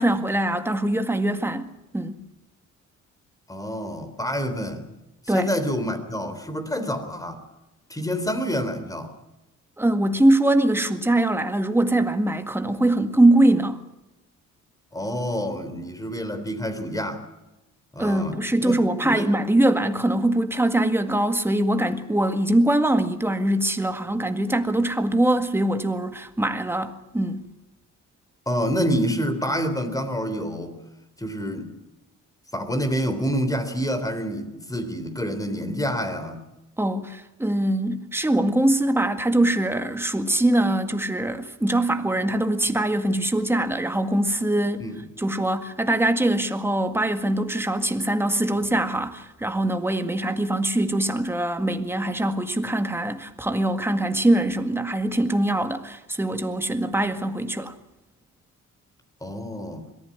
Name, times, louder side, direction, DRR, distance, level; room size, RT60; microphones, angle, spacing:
voice 1, 0.0-2.2 5.3-5.5 9.8-13.8 18.0-27.4 36.8-44.8 45.2-57.7, right 1 dB, 10° right, 1.9 m, -22 dB
voice 2, 3.5-4.9 5.3-7.4 7.9-9.1 14.9-17.3 17.9-18.8 19.0-19.3 28.5-30.8 31.2-31.7 32.5-36.4 44.8-45.0 59.2-59.9, equal, 10° left, 3.5 m, -27 dB
22.0 x 15.0 x 9.8 m
cardioid pair, 90°, 30 cm